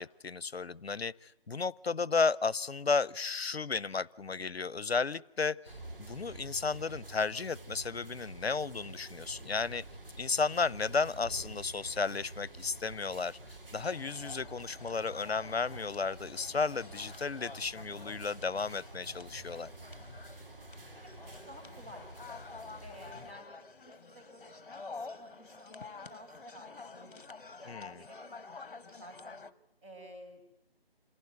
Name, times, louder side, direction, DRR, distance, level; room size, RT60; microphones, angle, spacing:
voice 1, 0.0-5.6 6.0-9.8 10.2-13.4 13.7-19.7 27.7-28.0, left 4 dB, 80° left, 22 dB, 0.9 m, -33 dB
sound 1, 5.6-23.3, right 2 dB, 60° right, 4.2 m, -49 dB
sound 2, 13.8-29.5, left 4 dB, 60° left, 1.3 m, -49 dB
voice 2, 20.9-22.1 22.8-29.4 29.8-30.4, equal, 15° right, -4 dB, 7.2 m, -53 dB
27.5 x 17.0 x 9.3 m, 0.91 s
figure-of-eight pair, 160°, 30 cm